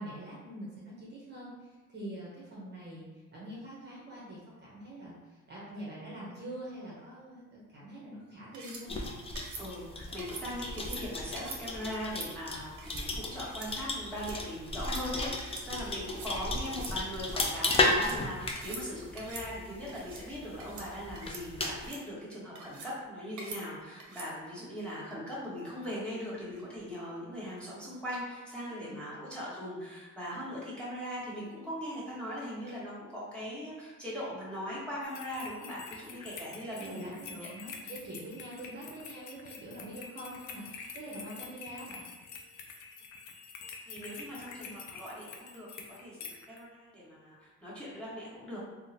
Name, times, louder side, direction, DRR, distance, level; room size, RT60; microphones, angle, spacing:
voice 1, 0.0-9.1 28.7-29.2 36.8-42.1 44.5-44.7, right 1 dB, 35° right, -6 dB, 0.8 m, -45 dB
sound 1, 8.5-8.8 9.4-9.6 10.2-10.5 10.8-11.0 11.4-11.6 11.9-12.3 12.8-13.1 13.4-13.7 14.0-14.4 14.7-15.0 15.4-15.7 15.9-16.3 16.7-16.9 17.2-18.2 18.5-18.8 19.2-19.5 19.9-20.2 20.6-20.9 21.2-21.4 21.7-22.0 22.6-22.9 23.4-23.6 24.0-24.3, right 3 dB, 70° right, 0.7 m, -45 dB
sound 2, 8.9-21.9, left 2 dB, 20° left, 0.4 m, -35 dB
voice 2, 9.6-37.1 37.4-37.5 43.9-48.6, equal, 5° left, -9 dB, 1.3 m, -40 dB
sound 3, 35.0-46.6, left 5 dB, 70° left, 0.5 m, -47 dB
3.5 x 2.1 x 2.7 m, 1.3 s
cardioid pair, 90°, 30 cm